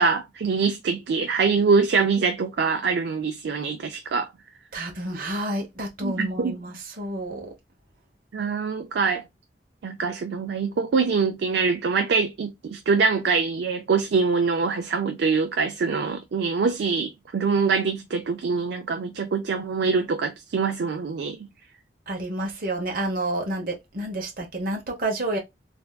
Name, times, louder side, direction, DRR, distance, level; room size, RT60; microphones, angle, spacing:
voice 1, 0.0-4.3 6.0-6.6 8.3-9.2 9.8-21.5, right 5 dB, 70° right, 0.4 m, -24 dB
voice 2, 4.7-7.5 22.1-25.4, right 1 dB, 50° right, 0.8 m, -29 dB
3.3 x 2.5 x 2.2 m
head